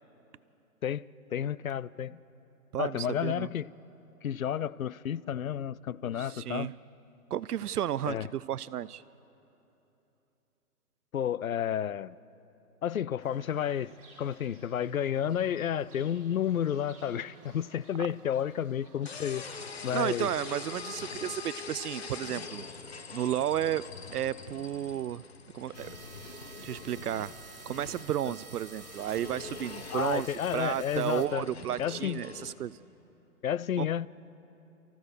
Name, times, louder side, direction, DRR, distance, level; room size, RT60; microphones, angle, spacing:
voice 1, 1.3-2.2 2.8-3.7 4.2-6.7 8.1-8.3 11.1-12.2 12.8-19.4 19.8-20.3 29.9-31.5 31.8-32.2 33.4-34.1, left 9 dB, 65° left, 0.6 m, -31 dB
voice 2, 2.7-3.5 6.2-6.7 7.3-9.0 19.9-22.7 23.1-23.8 24.1-25.2 25.5-25.9 26.6-27.3 27.7-30.3 30.5-32.8 33.8-33.9, right 11 dB, 85° right, 0.6 m, -32 dB
Fowl / Bird, 13.2-21.1, right 1 dB, 20° right, 3.1 m, -54 dB
sound 1, 19.1-32.5, left 5 dB, 45° left, 1.1 m, -44 dB
sound 2, 25.7-31.3, right 5 dB, 65° right, 2.1 m, -49 dB
28.5 x 15.0 x 6.8 m
hypercardioid pair, 175°, 45 cm